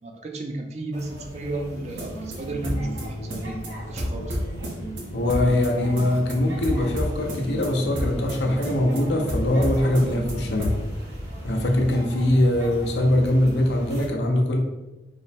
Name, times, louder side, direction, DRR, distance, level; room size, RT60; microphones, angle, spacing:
voice 1, 0.0-4.4, right 2 dB, 40° right, 3 dB, 0.4 m, -33 dB
sound 1, 0.9-14.0, equal, 65° right, 1.3 m, -38 dB
sound 2, 1.7-10.9, equal, 85° right, 0.8 m, -31 dB
voice 2, 5.1-10.7 11.4-14.6, left 1 dB, 75° left, 2 dB, 0.6 m, -22 dB
3.2 x 2.0 x 4.1 m, 1.1 s
head